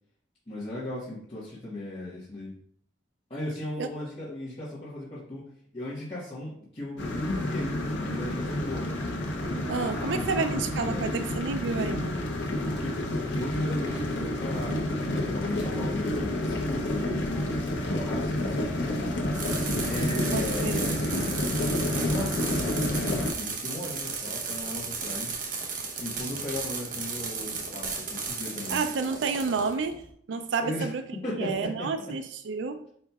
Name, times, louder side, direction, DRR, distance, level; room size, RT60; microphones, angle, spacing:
voice 1, 0.5-2.5 3.3-5.4 5.7-8.9 9.5-11.1 12.6-18.9 19.8-21.0 21.9-25.3 26.0-28.8 30.6-30.9 31.1-32.1, left 1 dB, 30° left, -11 dB, 1.3 m, -36 dB
sound 1, 7.0-23.3, left 1 dB, 85° left, 0.8 m, -29 dB
voice 2, 9.7-12.2 20.3-20.8 28.7-30.0 30.3-31.0 31.3-32.9, right 4 dB, 75° right, 9 dB, 0.4 m, -30 dB
sound 2, 19.3-30.1, right 4 dB, 45° right, 0.8 m, -34 dB
4.9 x 4.2 x 2.3 m, 0.62 s
head